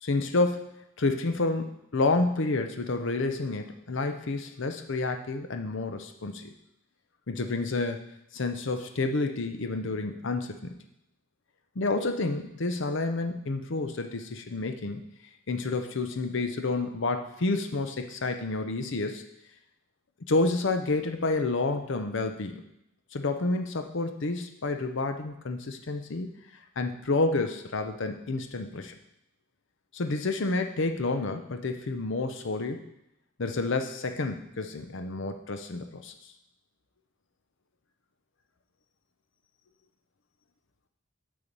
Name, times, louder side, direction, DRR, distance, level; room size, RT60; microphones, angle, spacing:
voice 1, 0.0-6.5 7.3-8.0 8.3-10.7 11.8-15.0 15.5-19.2 20.3-22.6 23.1-26.3 26.8-29.0 29.9-32.8 33.4-36.1, left 3 dB, 60° left, 6 dB, 0.7 m, -29 dB
6.9 x 6.8 x 5.3 m, 0.80 s
head